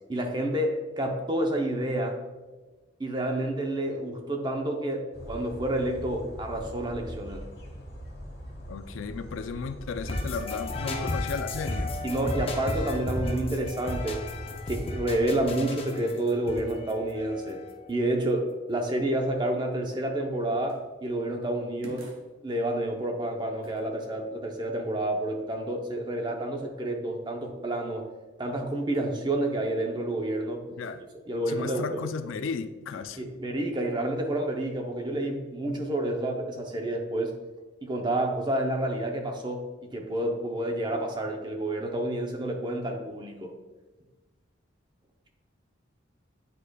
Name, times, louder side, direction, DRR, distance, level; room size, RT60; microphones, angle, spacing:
voice 1, 0.1-2.2 3.0-7.4 10.9-11.1 12.0-14.2 14.7-17.6 17.9-22.1 22.4-28.0 28.4-30.7 31.3-32.0 33.2-37.3 37.8-43.5, right 1 dB, 20° right, 2 dB, 0.6 m, -29 dB
sound 1, 5.1-15.6, equal, 55° left, 1.3 m, -42 dB
voice 2, 8.7-12.0 30.8-31.0 31.5-33.2, left 5 dB, 80° left, 10 dB, 0.4 m, -34 dB
sound 2, 10.1-17.9, left 2 dB, 30° left, 0.5 m, -34 dB
sound 3, 20.7-20.9 21.8-22.3 23.6-23.9 28.9-29.2 30.8-31.1, equal, 90° right, 1.0 m, -47 dB
8.4 x 4.9 x 2.3 m, 1.2 s
head